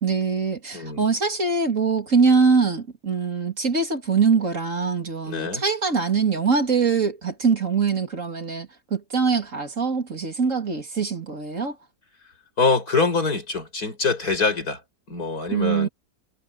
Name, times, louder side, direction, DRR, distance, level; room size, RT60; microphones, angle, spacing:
voice 1, 0.0-11.7 15.5-15.9, right 5 dB, 55° right, 3.2 m, -23 dB
voice 2, 0.7-1.0 5.3-5.6 12.6-14.8 15.1-15.9, left 4 dB, 75° left, 6.7 m, -24 dB
omnidirectional pair, 1.6 m